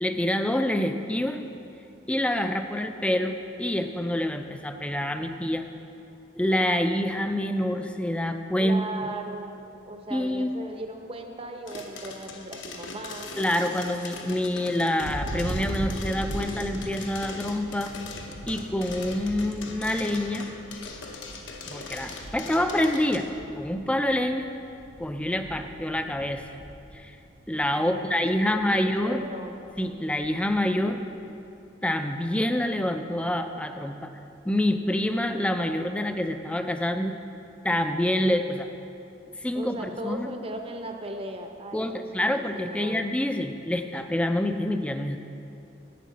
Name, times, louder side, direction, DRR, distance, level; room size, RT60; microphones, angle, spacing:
voice 1, 0.0-1.4 2.1-5.7 6.4-8.8 10.1-10.5 13.4-17.9 18.5-20.5 21.7-23.3 23.5-24.5 25.0-26.4 26.9-27.1 27.5-29.2 29.8-31.0 31.8-34.1 34.4-37.1 37.6-38.7 39.4-40.3 41.7-45.2, left 1 dB, 5° left, 7 dB, 0.4 m, -27 dB
voice 2, 8.6-13.4 27.7-29.6 39.5-43.0, right 1 dB, 30° right, 4 dB, 0.7 m, -37 dB
sound 1, 11.7-23.2, left 3 dB, 70° left, 0.9 m, -40 dB
Thunder, 15.0-27.9 28.2-28.8 29.1-30.6, right 1 dB, 80° right, 0.7 m, -40 dB
11.0 x 8.5 x 4.2 m, 2.8 s
head